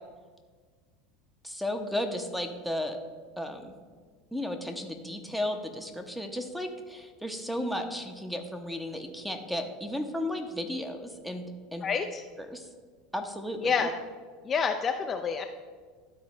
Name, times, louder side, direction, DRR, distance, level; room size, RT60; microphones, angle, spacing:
voice 1, 1.4-3.0 3.4-3.7 4.3-11.9 12.4-12.6 13.1-13.9, left 1 dB, ahead, 5 dB, 1.0 m, -34 dB
voice 2, 11.8-12.2 13.6-13.9 14.5-15.4, left 5 dB, 30° left, 5 dB, 0.5 m, -28 dB
12.5 x 4.3 x 3.2 m, 1.5 s
hypercardioid pair, 80°, 0 cm